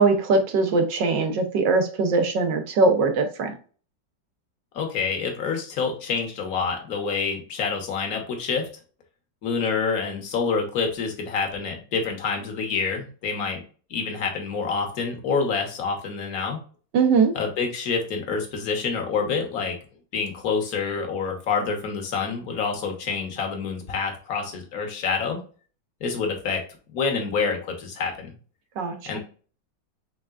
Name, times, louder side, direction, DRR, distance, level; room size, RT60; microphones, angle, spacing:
voice 1, 0.0-3.5 16.9-17.3 28.8-29.2, right 4 dB, 75° right, 6 dB, 1.6 m, -21 dB
voice 2, 4.7-8.7 9.4-13.6 13.9-16.6 17.3-19.7 20.1-25.4 26.0-26.6 26.9-28.3 29.1-29.2, left 5 dB, 55° left, 2 dB, 1.6 m, -27 dB
5.8 x 3.6 x 2.4 m, 0.39 s
omnidirectional pair, 1.9 m